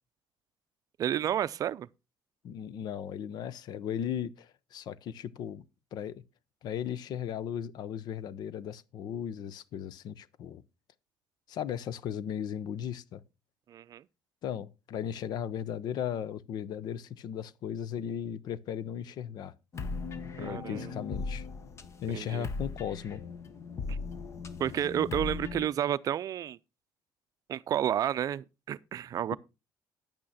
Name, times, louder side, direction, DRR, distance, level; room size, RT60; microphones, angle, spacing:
voice 1, 1.0-1.9 13.7-14.0 20.4-20.9 22.1-22.5 23.9-24.0 24.6-26.6 27.5-29.4, right 10 dB, 50° right, 0.5 m, -31 dB
voice 2, 2.4-6.2 6.6-10.6 11.5-13.2 14.4-19.5 20.4-21.5 22.0-23.2, left 9 dB, 65° left, 0.8 m, -36 dB
sound 1, 19.7-25.7, left 4 dB, 40° left, 1.2 m, -38 dB
10.5 x 8.8 x 4.2 m
cardioid pair, 120°, 8 cm